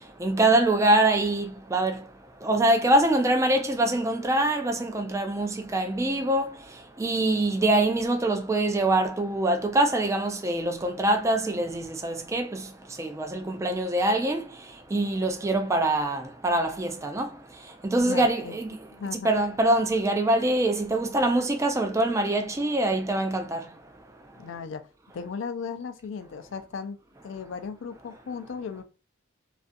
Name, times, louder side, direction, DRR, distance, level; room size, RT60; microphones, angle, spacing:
voice 1, 0.2-1.4 1.7-2.0 2.4-6.5 7.0-12.6 13.0-14.4 14.9-17.3 17.8-18.8 19.1-23.6, right 1 dB, 15° right, 0.3 m, -24 dB
voice 2, 18.0-18.6 19.0-19.4 24.4-24.9 25.1-27.0 27.2-28.8, left 5 dB, 65° left, 0.4 m, -36 dB
2.4 x 2.3 x 2.5 m
head